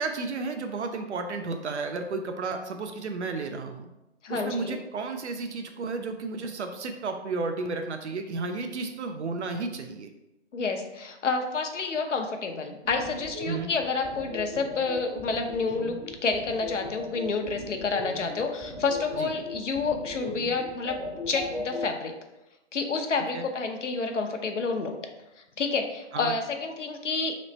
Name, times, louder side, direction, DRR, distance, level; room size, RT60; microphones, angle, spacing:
voice 1, 0.0-3.9 4.3-10.1 13.5-13.7 19.2-19.3 23.3-23.5 26.1-26.3, right 4 dB, 70° right, 6 dB, 0.5 m, -32 dB
voice 2, 4.2-4.8 10.5-21.0 21.3-22.2 22.7-25.0 25.6-27.4, left 4 dB, 90° left, 4 dB, 0.7 m, -29 dB
sound 1, 12.8-21.8, left 1 dB, 10° right, 0.4 m, -38 dB
3.1 x 3.1 x 4.0 m, 0.96 s
hypercardioid pair, 150°, 36 cm